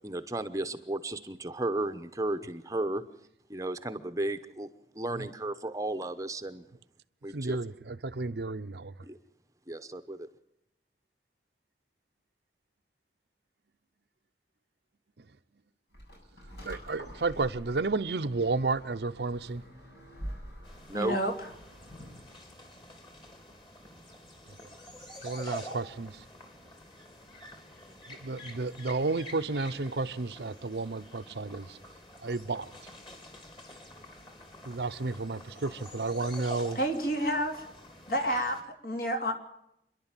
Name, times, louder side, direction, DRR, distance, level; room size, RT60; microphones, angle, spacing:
voice 1, 0.0-3.0 3.5-4.7 4.9-6.6 7.2-7.6 9.0-9.2 9.7-10.3 20.9-21.2, right 2 dB, 20° right, 0.9 m, -34 dB
voice 2, 7.3-8.9 16.6-19.6 25.2-26.2 28.1-31.8 32.2-32.7 34.6-36.8, right 3 dB, 70° right, 0.7 m, -32 dB
sound 1, 15.9-22.3, equal, 70° left, 7.8 m, -46 dB
sound 2, 20.6-38.6, left 1 dB, 30° left, 3.5 m, -48 dB
voice 3, 20.9-21.5 36.7-37.7 38.1-39.3, equal, 55° left, 3.2 m, -30 dB
27.5 x 11.5 x 9.0 m
head